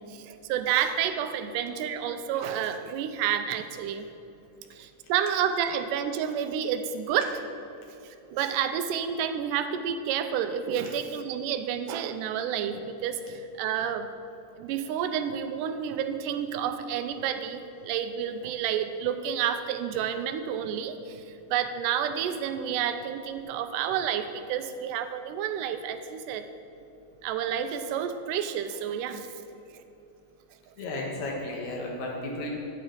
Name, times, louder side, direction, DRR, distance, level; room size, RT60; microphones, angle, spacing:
voice 1, 0.0-4.1 4.7-7.4 8.0-14.1 14.6-21.2 21.5-26.4 27.2-29.3, right 8 dB, 85° right, 9 dB, 2.1 m, -30 dB
voice 2, 30.8-32.5, left 1 dB, 70° left, -1 dB, 2.5 m, -33 dB
9.0 x 8.8 x 3.8 m, 2.8 s
omnidirectional pair, 3.7 m